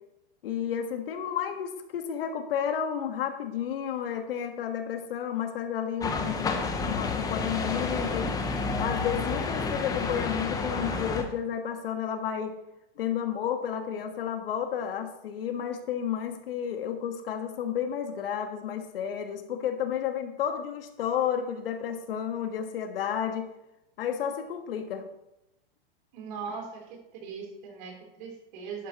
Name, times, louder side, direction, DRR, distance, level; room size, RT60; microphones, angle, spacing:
voice 1, 0.4-8.3 8.8-12.5 13.0-23.5 24.0-25.0, left 8 dB, 65° left, 7 dB, 1.5 m, -31 dB
sound 1, 6.0-11.2, left 4 dB, 10° left, 0.8 m, -30 dB
voice 2, 26.1-28.9, right 5 dB, 50° right, 0 dB, 3.6 m, -40 dB
11.5 x 10.0 x 3.0 m, 0.88 s
hypercardioid pair, 140°, 30 cm